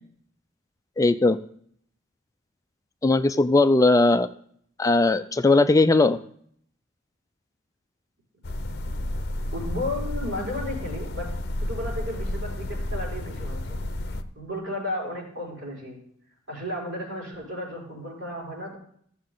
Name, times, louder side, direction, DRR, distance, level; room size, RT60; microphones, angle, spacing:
voice 1, 1.0-1.4 3.0-4.3 4.8-6.2, left 2 dB, 15° left, 10 dB, 0.3 m, -19 dB
sound 1, 8.4-14.2, left 1 dB, 55° left, 0.7 m, -31 dB
voice 2, 9.5-11.3 11.6-13.8 14.3-16.0 16.5-18.8, left 1 dB, 75° right, -5 dB, 5.0 m, -33 dB
15.0 x 7.2 x 3.8 m, 0.64 s
head